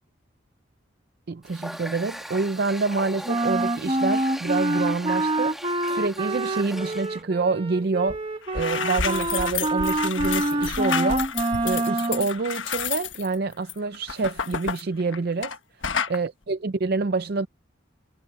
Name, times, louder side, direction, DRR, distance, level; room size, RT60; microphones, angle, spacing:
voice 1, 1.3-5.6 5.9-8.2 8.5-11.3 11.6-15.5 16.1-17.5, right 3 dB, 50° right, 0.5 m, -27 dB
Water tap faucet, 1.4-7.2, equal, ahead, 2.5 m, -39 dB
Wind instrument woodwind instrument, 3.2-12.3, right 1 dB, 25° right, 1.8 m, -26 dB
sound 1, 8.1-8.2 8.4-15.6 15.8-16.2, left 7 dB, 70° left, 1.3 m, -30 dB
head